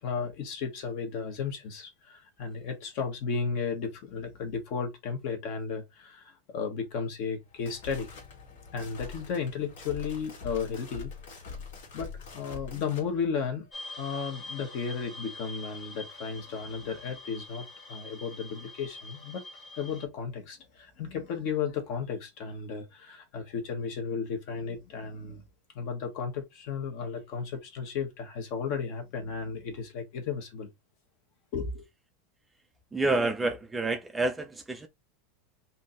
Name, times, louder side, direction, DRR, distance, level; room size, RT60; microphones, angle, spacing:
voice 1, 0.0-8.1 8.5-11.4 11.9-13.7 14.0-19.4 19.8-25.4 25.7-30.7 31.5-31.9, left 6 dB, 45° left, 1.2 m, -34 dB
sound 1, 7.4-13.1, left 5 dB, 65° left, 1.7 m, -44 dB
sound 2, 13.7-20.1, left 2 dB, 25° left, 1.6 m, -45 dB
voice 2, 32.9-34.9, right 2 dB, 5° right, 0.4 m, -28 dB
3.6 x 2.7 x 3.7 m
supercardioid pair, 165°, 0 cm